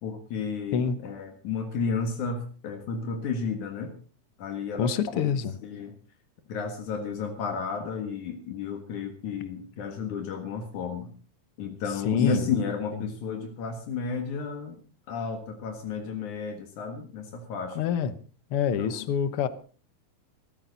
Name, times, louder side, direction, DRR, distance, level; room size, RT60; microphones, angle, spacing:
voice 1, 0.0-3.9 4.4-5.2 5.6-5.9 6.5-11.1 11.6-14.8 15.1-17.8 18.8-19.0, left 5 dB, 80° left, 3.1 m, -32 dB
voice 2, 4.8-5.6 11.9-12.5 12.9-13.1 17.8-18.2 18.5-19.5, left 7 dB, 60° left, 1.8 m, -27 dB
19.0 x 14.0 x 4.1 m
omnidirectional pair, 3.4 m